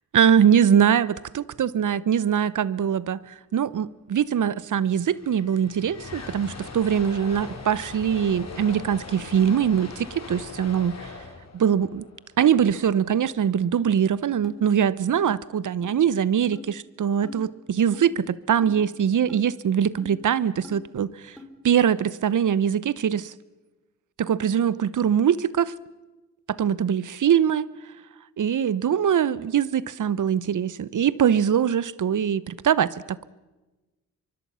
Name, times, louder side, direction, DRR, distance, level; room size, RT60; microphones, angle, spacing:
voice 1, 0.1-11.1 11.5-12.0 12.4-21.4 21.6-23.3 24.2-25.7 26.5-27.7 28.4-33.2, right 8 dB, 60° right, 19 dB, 0.9 m, -22 dB
sound 1, 4.9-13.1, left 4 dB, 50° left, 4.0 m, -40 dB
sound 2, 14.4-14.6 15.2-15.3 15.8-15.9 16.5-16.7 17.2-17.4 17.9-18.1 18.6-18.8 19.3-19.4 20.0-20.1 20.6-20.8 21.4-21.5, left 3 dB, ahead, 5.5 m, -41 dB
24.0 x 24.0 x 5.7 m, 1.1 s
supercardioid pair, 50°, 35 cm